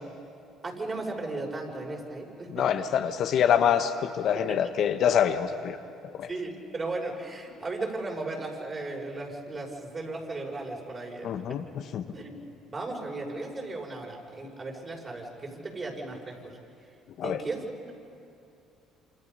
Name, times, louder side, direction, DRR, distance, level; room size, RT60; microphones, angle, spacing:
voice 1, 0.6-2.7 4.3-4.6 6.3-11.6 12.1-12.4 12.7-16.5 17.2-17.9, right 2 dB, 35° right, 0 dB, 6.0 m, -36 dB
voice 2, 2.5-5.8 6.2-6.3 11.2-11.6 11.9-12.0 17.2-17.4, left 8 dB, 65° left, 7 dB, 1.2 m, -25 dB
28.0 x 27.0 x 5.5 m, 2.6 s
supercardioid pair, 80°, 0 cm